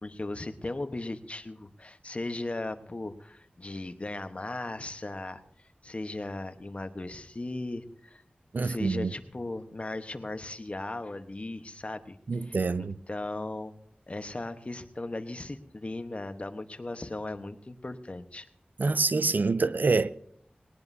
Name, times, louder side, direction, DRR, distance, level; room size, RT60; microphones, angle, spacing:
voice 1, 0.0-5.4 5.8-8.2 8.6-12.2 12.4-13.7 14.1-18.5, left 2 dB, 40° left, 1.1 m, -37 dB
voice 2, 8.5-9.1 12.3-13.0 18.8-20.1, right 4 dB, 70° right, 0.5 m, -26 dB
20.0 x 18.5 x 2.7 m
wide cardioid pair, 60°, 3 cm